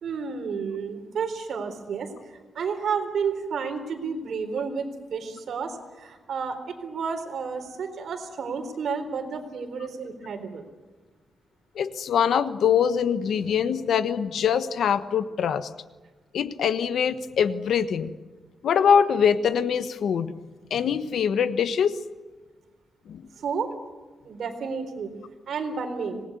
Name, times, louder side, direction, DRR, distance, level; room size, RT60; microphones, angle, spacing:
voice 1, 0.0-10.7 23.4-23.7 24.2-25.2 25.5-26.2, right 5 dB, 70° right, 5 dB, 4.1 m, -31 dB
voice 2, 11.7-15.7 16.3-18.2 18.6-20.3 20.7-22.0 23.1-23.2, left 7 dB, 85° left, 12 dB, 1.3 m, -23 dB
25.5 x 19.5 x 9.6 m, 1.3 s
wide cardioid pair, 150°, 0 cm